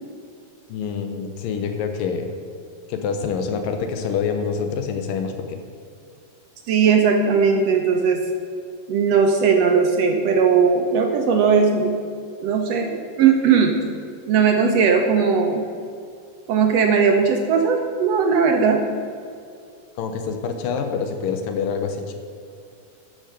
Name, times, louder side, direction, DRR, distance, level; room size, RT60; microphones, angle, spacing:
voice 1, 0.7-2.3 2.9-5.6 20.0-22.1, left 6 dB, 80° left, 6 dB, 2.7 m, -26 dB
voice 2, 6.7-8.2 8.9-12.0 12.4-13.8 14.3-15.7 16.5-18.8, right 6 dB, 75° right, 3 dB, 1.6 m, -18 dB
12.0 x 6.6 x 6.7 m, 2.4 s
omnidirectional pair, 3.9 m